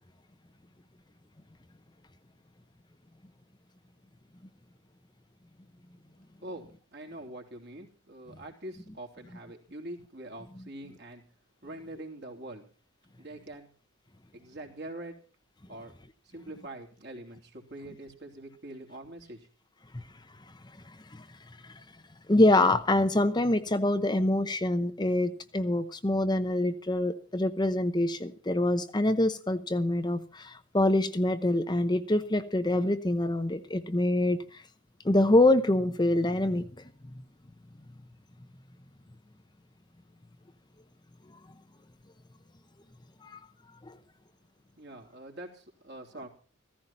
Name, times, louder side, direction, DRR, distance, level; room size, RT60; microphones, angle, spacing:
voice 1, 6.4-11.2 11.6-12.6 13.2-13.7 14.3-15.2 15.7-15.9 16.2-19.5 44.8-46.3, right 1 dB, 50° right, 3.2 m, -44 dB
voice 2, 22.3-34.6 35.0-36.7 43.2-43.4 43.9-44.0, left 1 dB, 20° left, 0.8 m, -25 dB
15.5 x 15.0 x 4.3 m
head